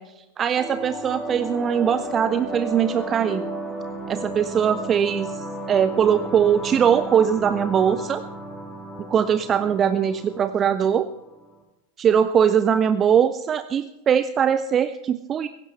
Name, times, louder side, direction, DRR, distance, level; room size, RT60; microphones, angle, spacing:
voice 1, 0.0-3.4 4.1-8.2 9.1-11.1 12.0-15.5, right 8 dB, 25° right, 13 dB, 0.5 m, -21 dB
sound 1, 0.6-11.6, right 1 dB, ahead, 2.9 m, -34 dB
16.5 x 16.0 x 3.3 m, 0.96 s
figure-of-eight pair, 90°, 0 cm